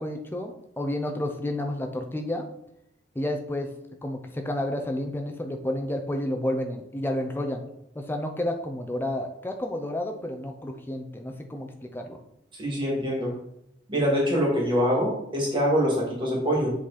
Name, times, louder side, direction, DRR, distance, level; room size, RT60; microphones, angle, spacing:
voice 1, 0.0-2.5 3.1-3.7 4.0-7.6 8.0-12.2, left 1 dB, 10° left, 4 dB, 0.6 m, -30 dB
voice 2, 12.5-13.3 13.9-16.7, equal, 25° right, -4 dB, 2.3 m, -24 dB
7.5 x 4.0 x 4.2 m, 0.78 s
head